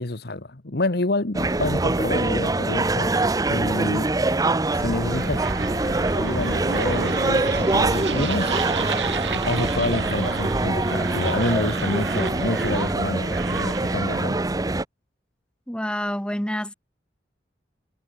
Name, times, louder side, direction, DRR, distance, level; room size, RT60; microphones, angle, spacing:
voice 1, 0.0-3.1 3.4-4.1 4.7-5.5 5.7-8.5 8.8-14.4, left 2 dB, 60° left, 1.4 m, -28 dB
sound 1, 1.3-14.8, right 2 dB, 20° right, 0.7 m, -24 dB
sound 2, 4.8-14.2, right 4 dB, 85° right, 7.0 m, -32 dB
voice 2, 15.7-16.7, equal, 5° left, 1.7 m, -27 dB
head